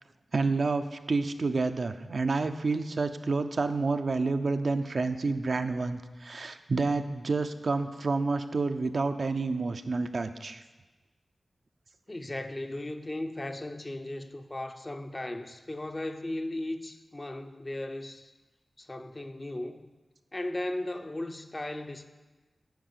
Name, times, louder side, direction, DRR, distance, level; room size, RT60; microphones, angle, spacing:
voice 1, 0.3-10.6, right 3 dB, 60° right, 0.4 m, -29 dB
voice 2, 12.1-18.3 18.8-19.9 20.3-22.1, left 1 dB, 25° left, 0.5 m, -36 dB
9.4 x 4.7 x 6.6 m
wide cardioid pair, 105°, 0 cm